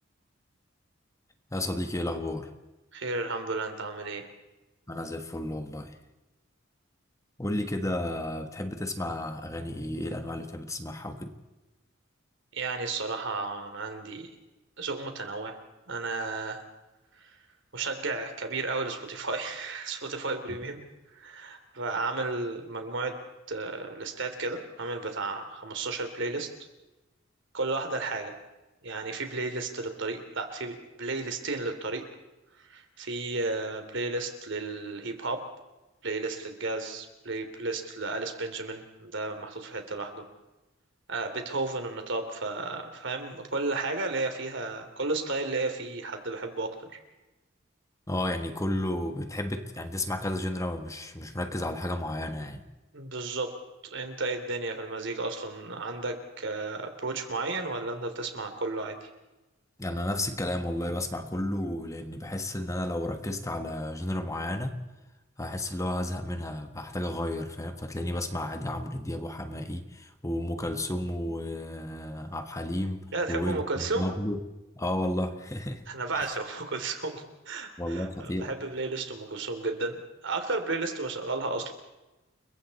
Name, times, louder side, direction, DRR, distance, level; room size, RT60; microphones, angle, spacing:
voice 1, 1.5-2.5 4.9-6.0 7.4-11.3 48.1-52.6 59.8-64.8 65.4-73.6 73.9-74.4 74.8-75.8 76.1-76.3 77.8-78.5, left 1 dB, 15° left, 7 dB, 1.4 m, -32 dB
voice 2, 2.9-4.2 12.5-14.3 14.8-15.6 15.9-16.6 17.7-20.8 21.1-23.2 23.5-26.5 27.5-28.3 28.8-32.0 32.7-35.4 36.0-40.2 41.1-46.7 52.9-53.5 53.9-59.0 73.1-74.1 75.9-80.0 80.2-81.7, right 3 dB, 65° right, 6 dB, 3.2 m, -33 dB
29.5 x 23.0 x 4.3 m, 1.0 s
head